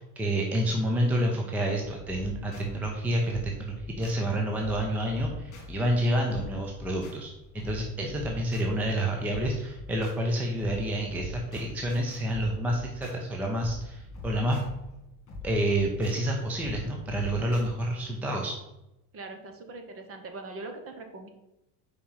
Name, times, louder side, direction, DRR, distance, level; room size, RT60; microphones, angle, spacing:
voice 1, 0.0-14.6 15.4-18.6, right 1 dB, 5° right, 0 dB, 0.5 m, -29 dB
sound 1, 1.8-17.7, left 2 dB, 30° left, 2.2 m, -44 dB
voice 2, 19.1-21.3, right 3 dB, 30° right, 5 dB, 0.9 m, -41 dB
5.0 x 4.4 x 5.6 m, 0.91 s
cardioid pair, 150°, 45 cm